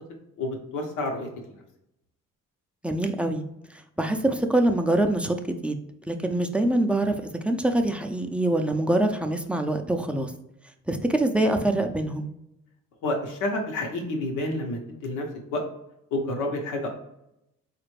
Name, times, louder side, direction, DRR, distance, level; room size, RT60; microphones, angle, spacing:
voice 1, 0.4-1.6 13.0-15.2 15.5-15.6 16.1-16.9, left 2 dB, 90° left, 2 dB, 1.0 m, -29 dB
voice 2, 2.8-3.4 3.7-5.8 6.1-10.3 10.9-12.3, right 1 dB, 5° right, 4 dB, 0.4 m, -24 dB
4.2 x 2.5 x 3.2 m, 0.83 s
cardioid pair, 90°, 30 cm